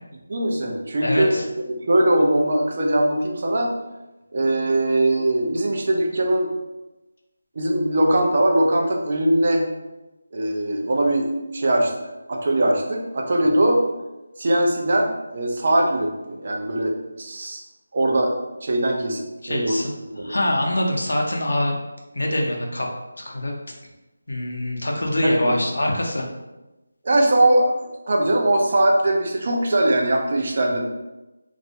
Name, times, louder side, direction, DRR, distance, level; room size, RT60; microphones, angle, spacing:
voice 1, 0.3-3.7 4.3-6.5 7.6-9.6 10.3-11.9 12.3-13.8 14.4-17.6 17.9-18.4 18.6-19.8 20.1-20.3 25.2-25.5 27.0-27.7 28.1-30.8, right 1 dB, 50° right, 1 dB, 0.4 m, -21 dB
voice 2, 1.0-1.4 19.4-19.9 20.2-21.7 22.1-22.9 23.2-23.5 24.3-26.2, left 1 dB, 80° left, 0 dB, 0.6 m, -24 dB
2.4 x 2.0 x 2.7 m, 1.0 s
figure-of-eight pair, 165°, 0 cm